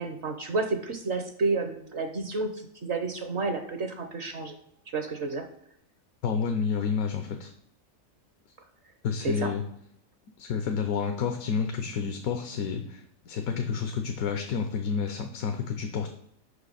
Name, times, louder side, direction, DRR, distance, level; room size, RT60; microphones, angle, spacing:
voice 1, 0.0-4.5 4.9-5.5 9.2-9.5, right 3 dB, 60° right, 7 dB, 1.0 m, -30 dB
voice 2, 6.2-7.5 9.0-9.6 10.4-16.1, left 6 dB, 85° left, 5 dB, 1.2 m, -30 dB
5.6 x 5.0 x 6.5 m, 0.72 s
omnidirectional pair, 1.5 m